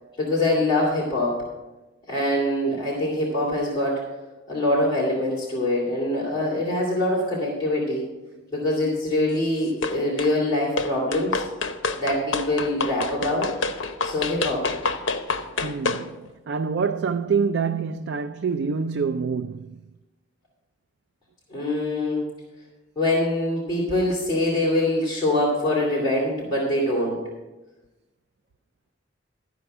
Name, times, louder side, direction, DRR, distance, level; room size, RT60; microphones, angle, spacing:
voice 1, 0.2-1.4 2.1-4.0 4.5-8.1 8.5-11.4 11.9-13.5 14.0-14.7 21.5-22.2 23.0-27.2, left 1 dB, 20° left, 2.6 m, -24 dB
sound 1, 9.8-10.3 10.8-16.1, left 3 dB, 75° left, 0.8 m, -28 dB
voice 2, 15.6-19.8, right 5 dB, 60° right, 0.4 m, -26 dB
13.0 x 5.1 x 7.8 m
head